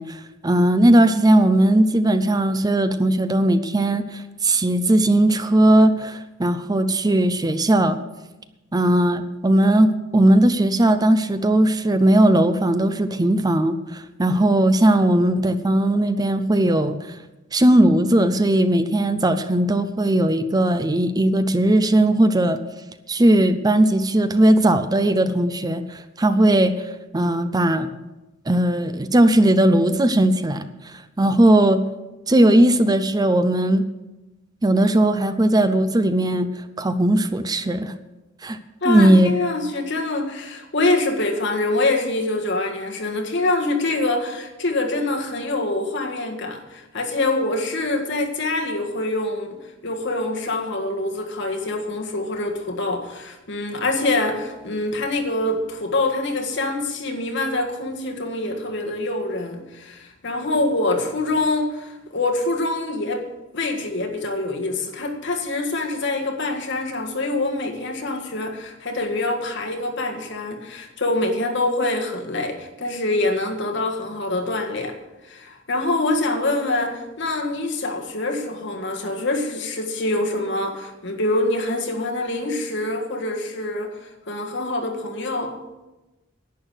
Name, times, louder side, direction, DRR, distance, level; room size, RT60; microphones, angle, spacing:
voice 1, 0.0-8.0 8.7-17.2 17.5-22.6 23.1-26.9 27.1-27.9 28.5-31.8 32.3-33.8 34.6-37.9 38.4-38.6 38.8-39.3, right 1 dB, 20° right, 11 dB, 0.5 m, -18 dB
voice 2, 38.8-63.3 63.5-75.0 75.2-85.6, left 2 dB, 65° left, 2 dB, 1.8 m, -25 dB
11.0 x 9.4 x 6.4 m, 1.0 s
head